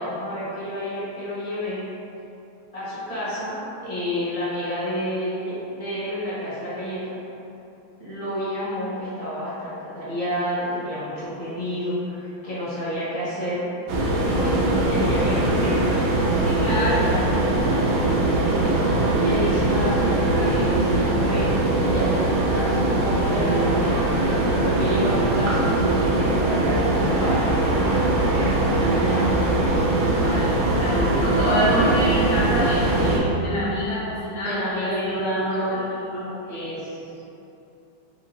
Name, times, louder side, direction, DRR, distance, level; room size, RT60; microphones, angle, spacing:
voice 1, 0.0-1.8 2.7-7.2 8.0-13.7 14.3-14.6 14.9-15.8 16.4-17.2 18.6-21.5 21.8-24.0 24.5-27.8 28.3-29.4 31.4-31.9 34.4-35.9 36.4-37.1, equal, 25° left, -10 dB, 1.0 m, -29 dB
sound 1, 13.9-33.2, right 2 dB, 85° right, 1.4 m, -21 dB
voice 2, 16.4-17.1 30.2-36.7, left 1 dB, 90° left, -8 dB, 0.6 m, -28 dB
5.7 x 2.4 x 2.9 m, 2.8 s
omnidirectional pair, 2.2 m